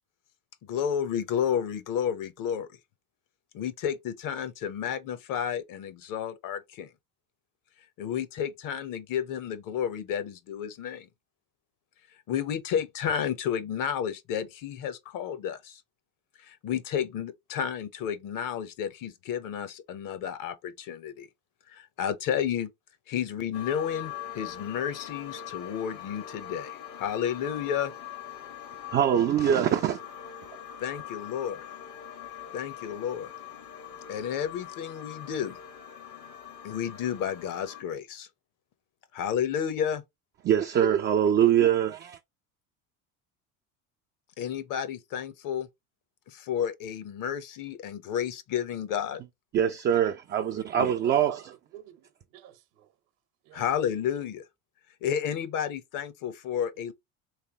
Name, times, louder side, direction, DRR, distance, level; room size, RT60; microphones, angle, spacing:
voice 1, 0.6-2.8 3.5-6.9 7.8-11.1 12.1-15.8 16.3-21.3 21.6-22.7 23.1-27.9 30.8-31.6 32.5-33.3 34.1-35.6 36.6-38.3 39.1-40.0 44.4-45.7 46.3-49.2 50.8-50.9 53.5-54.5 54.9-56.9, left 8 dB, 50° left, 0.8 m, -31 dB
sound 1, 23.5-37.8, left 9 dB, 70° left, 1.2 m, -42 dB
voice 2, 28.9-30.0 40.5-42.2 49.5-51.4, right 9 dB, 30° right, 0.4 m, -23 dB
voice 3, 50.7-52.1 52.3-52.9 53.4-53.6, right 11 dB, 65° right, 1.0 m, -46 dB
3.3 x 3.3 x 2.8 m
hypercardioid pair, 85°, 42 cm